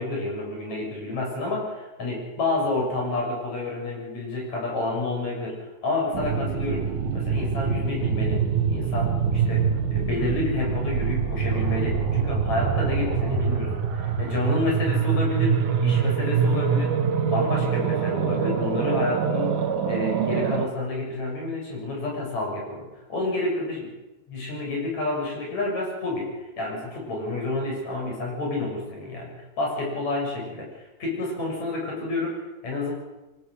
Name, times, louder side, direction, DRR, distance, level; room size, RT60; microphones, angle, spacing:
voice 1, 0.0-8.4 8.7-17.0 17.3-19.6 19.9-23.9 24.3-32.9, left 2 dB, 65° left, -1 dB, 8.2 m, -29 dB
sound 1, 6.1-20.7, right 6 dB, 90° right, 3.1 m, -24 dB
24.5 x 18.5 x 6.6 m, 1.0 s
omnidirectional pair, 3.5 m